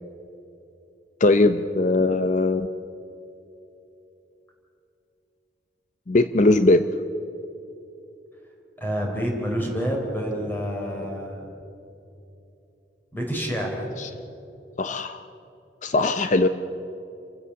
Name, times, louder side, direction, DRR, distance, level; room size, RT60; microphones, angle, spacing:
voice 1, 1.2-2.7 6.1-6.8 14.0-14.1 14.8-15.2 15.8-16.5, left 2 dB, 45° left, 10 dB, 0.7 m, -20 dB
voice 2, 8.8-11.5 13.1-13.9, equal, 10° left, 0 dB, 4.1 m, -28 dB
28.5 x 15.5 x 7.2 m, 2.8 s
head